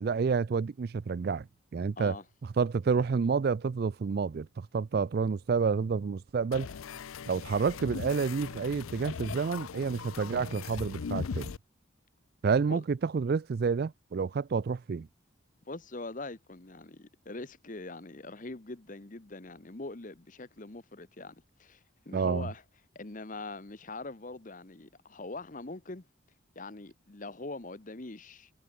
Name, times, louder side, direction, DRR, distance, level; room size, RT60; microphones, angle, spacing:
voice 1, 0.0-1.5 1.7-2.2 2.6-6.7 7.3-11.5 12.4-15.1 22.1-22.5, right 5 dB, 50° right, 0.3 m, -29 dB
sound 1, 6.5-11.6, left 6 dB, 85° left, 0.5 m, -39 dB
voice 2, 15.6-22.6 22.9-26.1 26.5-28.5, left 2 dB, 40° left, 1.1 m, -42 dB
head